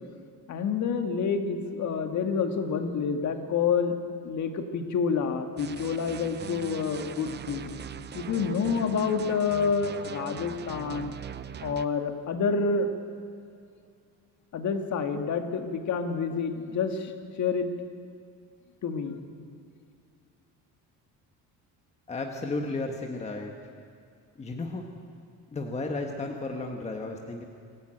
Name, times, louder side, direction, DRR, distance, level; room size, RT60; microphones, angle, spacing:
voice 1, 0.5-7.7 8.1-11.1 11.6-12.9 14.5-17.1 17.4-17.7 18.8-19.2, left 5 dB, 50° left, 6 dB, 1.9 m, -28 dB
sound 1, 5.6-11.9, right 8 dB, 30° right, 0.6 m, -40 dB
voice 2, 22.1-23.5 24.4-24.8 25.5-27.4, left 2 dB, 15° left, 2 dB, 1.4 m, -33 dB
24.0 x 15.0 x 9.0 m, 2.4 s
cardioid pair, 160°, 37 cm